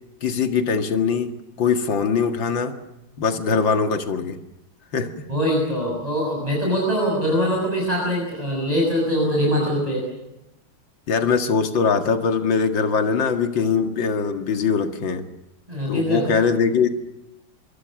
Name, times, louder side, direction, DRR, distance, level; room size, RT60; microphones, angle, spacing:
voice 1, 0.2-1.3 1.6-2.7 3.2-4.4 4.9-5.3 11.1-15.2 15.9-17.0, left 5 dB, 65° left, 6 dB, 2.6 m, -22 dB
voice 2, 5.3-10.0 15.7-16.3, equal, 15° right, -2 dB, 6.6 m, -23 dB
25.5 x 24.0 x 6.4 m, 0.90 s
omnidirectional pair, 2.2 m